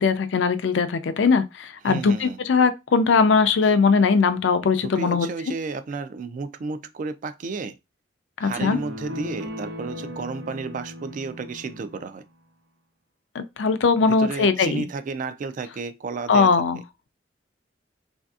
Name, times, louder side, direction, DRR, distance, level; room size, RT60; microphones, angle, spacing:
voice 1, 0.0-5.3 8.4-8.8 13.3-14.9 16.3-16.8, left 5 dB, 75° left, 0.4 m, -20 dB
voice 2, 1.8-2.4 4.6-7.8 8.4-12.2 14.1-16.5, right 4 dB, 45° right, 0.3 m, -32 dB
sound 1, 8.6-12.1, left 1 dB, 70° right, 0.8 m, -37 dB
3.3 x 2.6 x 2.3 m
head